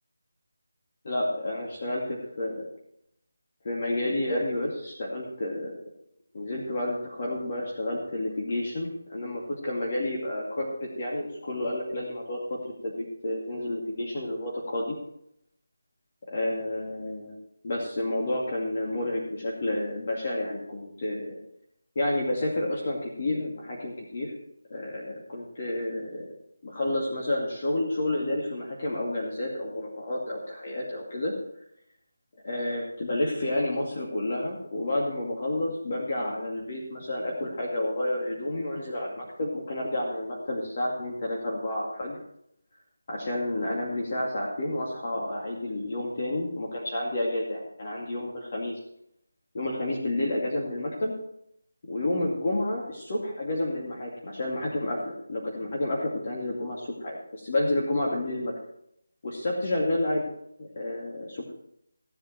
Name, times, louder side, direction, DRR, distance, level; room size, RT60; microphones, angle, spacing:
voice 1, 1.0-2.7 3.6-5.8 6.3-12.6 12.8-14.9 16.3-17.3 17.6-21.4 22.0-24.3 24.7-26.2 26.6-31.3 32.4-42.2 43.1-48.7 49.5-51.1 51.9-58.5 59.2-60.2 60.6-61.5, left 1 dB, 40° left, -3 dB, 2.3 m, -30 dB
16.0 x 8.0 x 4.6 m, 0.76 s
figure-of-eight pair, 165°, 0 cm